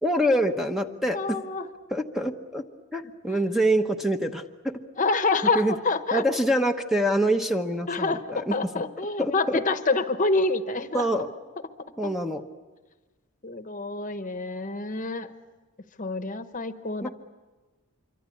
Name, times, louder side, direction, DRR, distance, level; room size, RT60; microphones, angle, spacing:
voice 1, 0.0-1.4 1.9-2.6 2.9-4.8 5.5-5.7 6.1-8.5 9.2-9.6 10.9-11.3 12.0-12.4 17.0-17.1, right 1 dB, ahead, 5 dB, 1.0 m, -25 dB
voice 2, 1.1-1.7 3.3-3.4 5.0-6.2 7.9-11.2 12.0-12.1 13.4-15.3 16.0-17.1, left 3 dB, 35° left, 10 dB, 1.1 m, -27 dB
26.5 x 24.5 x 8.5 m, 1.3 s
head